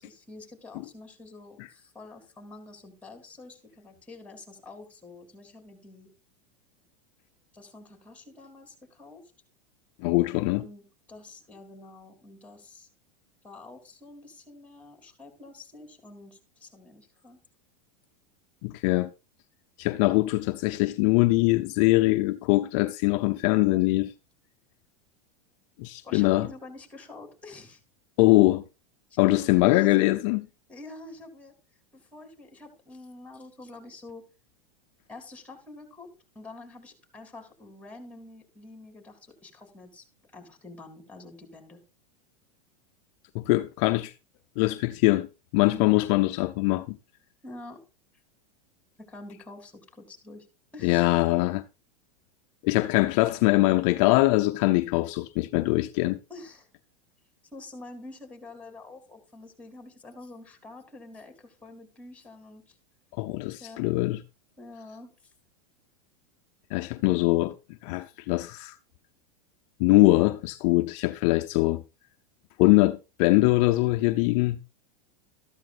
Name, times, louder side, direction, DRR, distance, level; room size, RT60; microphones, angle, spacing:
voice 1, 0.0-6.1 7.5-9.2 10.6-12.9 13.4-17.4 26.0-27.8 29.1-30.1 30.7-31.5 31.9-34.2 35.1-36.1 36.4-40.0 40.3-41.8 45.7-45.9 47.4-47.8 49.1-50.5 50.7-51.1 56.3-56.7 57.5-62.8 63.6-63.9 64.6-65.1, left 2 dB, 5° left, 3.4 m, -47 dB
voice 2, 10.0-10.6 18.6-19.1 19.8-24.1 25.8-26.5 28.2-28.6 29.2-30.4 43.3-44.1 44.6-45.3 45.5-47.0 50.8-51.6 52.6-56.2 63.2-64.2 66.7-67.5 67.8-68.7 69.8-71.8 72.6-74.6, left 20 dB, 55° left, 0.7 m, -22 dB
13.5 x 13.0 x 2.5 m
supercardioid pair, 125°, 20 cm